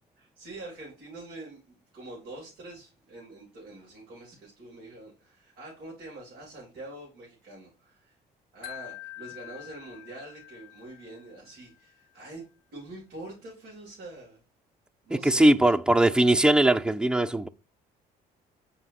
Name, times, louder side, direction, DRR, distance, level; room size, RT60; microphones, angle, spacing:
voice 1, 0.2-8.2 8.5-12.4 12.7-14.4 15.0-15.8, right 2 dB, 75° right, 3.5 m, -45 dB
Wind chime, 8.6-11.7, left 16 dB, 70° left, 0.7 m, -46 dB
voice 2, 15.2-17.5, right 1 dB, 5° right, 0.3 m, -20 dB
7.8 x 4.9 x 2.9 m
cardioid pair, 110°, 17 cm